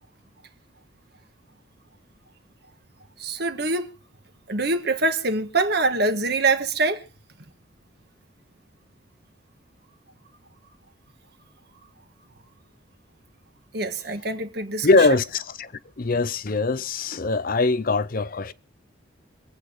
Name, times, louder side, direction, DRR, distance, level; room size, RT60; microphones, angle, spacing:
voice 1, 3.2-3.9 4.5-7.0 13.7-14.9, right 3 dB, 55° right, 1.5 m, -24 dB
voice 2, 14.8-15.7 16.0-18.5, left 3 dB, 50° left, 0.6 m, -22 dB
26.5 x 8.9 x 3.7 m
head